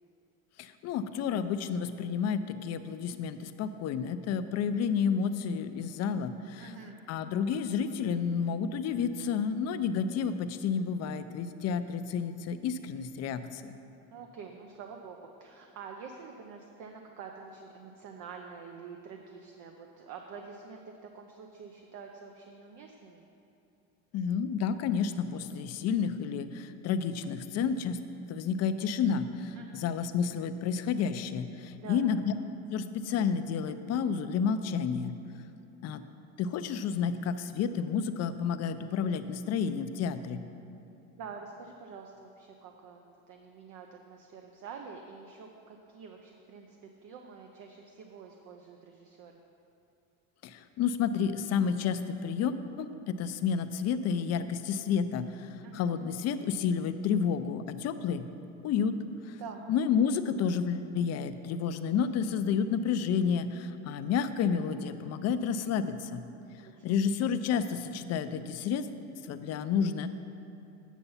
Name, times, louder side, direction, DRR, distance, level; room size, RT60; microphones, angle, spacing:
voice 1, 0.6-6.7 7.1-13.7 24.1-28.0 28.3-32.3 32.7-35.1 35.8-36.0 36.4-40.4 50.4-58.2 58.6-58.9 59.3-59.4 59.7-66.2 66.8-68.9 69.3-70.1, left 6 dB, 45° left, 10 dB, 0.5 m, -30 dB
voice 2, 6.6-7.0 14.1-23.3 29.5-29.8 31.8-32.0 41.1-49.4 55.6-55.9 59.4-59.6 66.6-66.9, right 5 dB, 55° right, 3 dB, 0.7 m, -47 dB
8.3 x 6.8 x 5.5 m, 2.8 s
cardioid pair, 125°, 36 cm